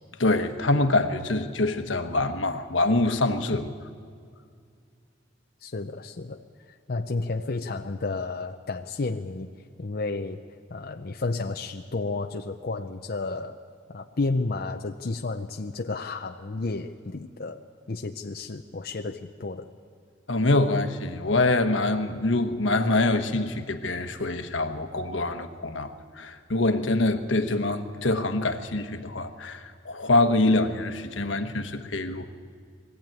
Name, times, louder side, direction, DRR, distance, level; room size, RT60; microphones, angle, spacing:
voice 1, 0.2-3.7 20.3-32.3, left 2 dB, 80° left, 7 dB, 1.2 m, -25 dB
voice 2, 5.6-6.4 6.7-9.5 9.8-10.4 10.7-13.6 13.9-19.7, left 3 dB, 55° left, 4 dB, 0.6 m, -32 dB
22.0 x 15.0 x 9.1 m, 2.2 s
head